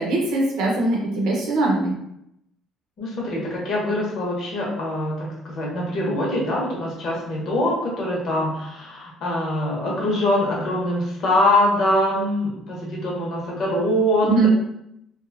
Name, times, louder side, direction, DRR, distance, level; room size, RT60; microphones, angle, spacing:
voice 1, 0.0-1.9 14.2-14.5, right 2 dB, 85° right, -2 dB, 0.7 m, -21 dB
voice 2, 3.0-14.5, left 1 dB, 50° left, -3 dB, 0.9 m, -23 dB
2.6 x 2.3 x 2.7 m, 0.77 s
cardioid pair, 165°, 0 cm